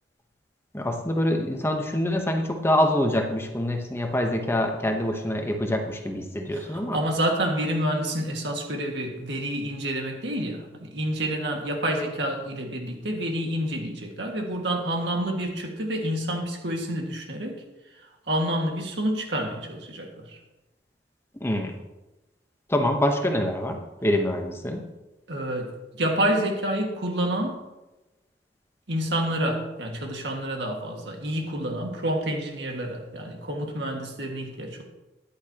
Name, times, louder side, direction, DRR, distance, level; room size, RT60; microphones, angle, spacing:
voice 1, 0.7-7.0 21.4-21.7 22.7-24.8, left 1 dB, 15° left, 3 dB, 1.0 m, -25 dB
voice 2, 6.5-17.6 18.3-20.4 25.3-27.6 28.9-34.8, right 1 dB, 70° right, 2 dB, 1.9 m, -28 dB
13.5 x 10.5 x 2.9 m, 1.0 s
head